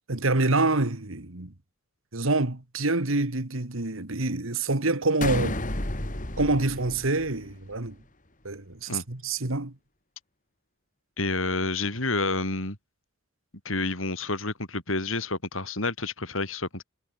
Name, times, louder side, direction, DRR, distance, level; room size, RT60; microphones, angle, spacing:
voice 1, 0.1-1.5 2.1-5.6 6.4-8.0 8.4-9.7, right 2 dB, 80° right, 2.2 m, -26 dB
sound 1, 5.2-7.8, left 1 dB, 40° left, 3.3 m, -32 dB
voice 2, 11.2-12.8 13.6-16.8, left 3 dB, 75° left, 6.0 m, -29 dB
head